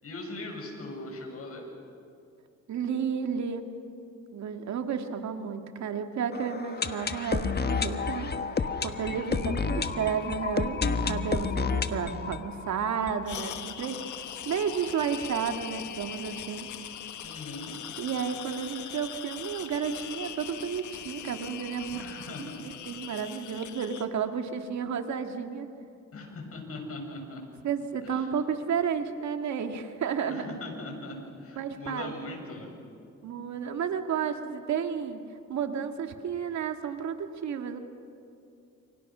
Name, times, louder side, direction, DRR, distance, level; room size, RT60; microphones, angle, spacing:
voice 1, 0.0-1.7 9.0-9.4 17.2-17.8 21.9-22.6 23.5-23.7 26.1-27.4 28.0-28.3 30.3-32.7, left 2 dB, 50° left, 1 dB, 7.4 m, -40 dB
voice 2, 2.7-3.7 4.3-8.4 8.8-14.0 14.5-16.7 18.0-22.1 22.4-25.7 27.6-30.5 31.6-32.1 33.2-35.2 35.5-37.8, right 7 dB, 65° right, 6 dB, 2.1 m, -32 dB
sound 1, 6.3-14.1 14.4-14.5 14.6-14.7 15.3-15.4, left 5 dB, 35° left, 1.4 m, -31 dB
sound 2, 13.2-24.1, left 10 dB, 75° left, 1.7 m, -41 dB
29.5 x 28.5 x 6.3 m, 2.5 s
cardioid pair, 90°, 30 cm